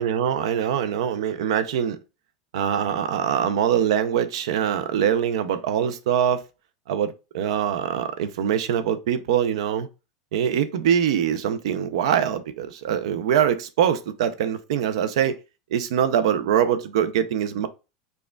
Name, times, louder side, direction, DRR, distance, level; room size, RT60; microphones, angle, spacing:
voice 1, 0.0-2.0 2.5-6.4 6.9-9.9 10.3-15.4 15.7-17.7, right 9 dB, 75° right, 0.5 m, -23 dB
5.0 x 2.3 x 2.3 m
supercardioid pair, 110°, 3 cm